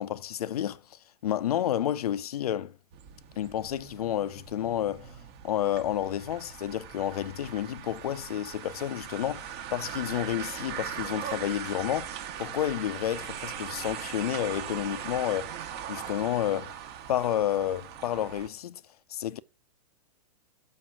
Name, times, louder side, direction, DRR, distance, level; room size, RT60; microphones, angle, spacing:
voice 1, 0.0-2.7 3.4-5.1 5.4-15.5 15.9-16.8 17.1-18.8 19.1-19.4, left 11 dB, 70° left, 0.5 m, -30 dB
sound 1, 2.9-18.5, right 9 dB, 45° right, 1.1 m, -40 dB
6.4 x 5.4 x 5.9 m
hypercardioid pair, 110°, 20 cm